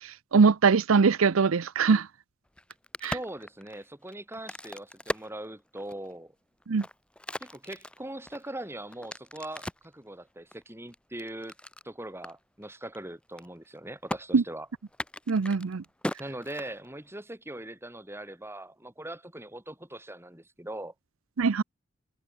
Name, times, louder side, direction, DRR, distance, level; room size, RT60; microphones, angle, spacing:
voice 1, 0.0-2.1 3.0-3.1 6.7-6.8 14.3-14.4 15.3-15.8 21.4-21.6, right 5 dB, 85° right, 0.6 m, -22 dB
Crack, 2.5-6.1 6.6-9.9 10.5-11.9 12.2-12.3 12.6-13.0 13.2-13.8 14.1-14.2 14.9-17.1, left 1 dB, 5° left, 1.3 m, -39 dB
voice 2, 3.1-6.3 7.4-11.5 11.8-14.7 16.2-20.9, right 1 dB, 10° right, 4.0 m, -41 dB
head